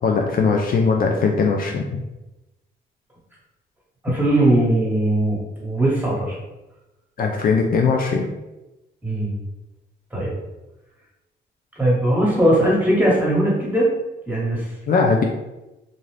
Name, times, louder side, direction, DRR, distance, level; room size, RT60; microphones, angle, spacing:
voice 1, 0.0-2.0 7.2-8.3 14.9-15.2, left 4 dB, 45° left, 2 dB, 0.4 m, -19 dB
voice 2, 4.0-6.4 9.0-9.4 10.1-10.3 11.8-13.9 14.3-14.7, right 1 dB, 10° right, -5 dB, 1.2 m, -19 dB
2.6 x 2.4 x 3.2 m, 1.0 s
cardioid pair, 90°, 20 cm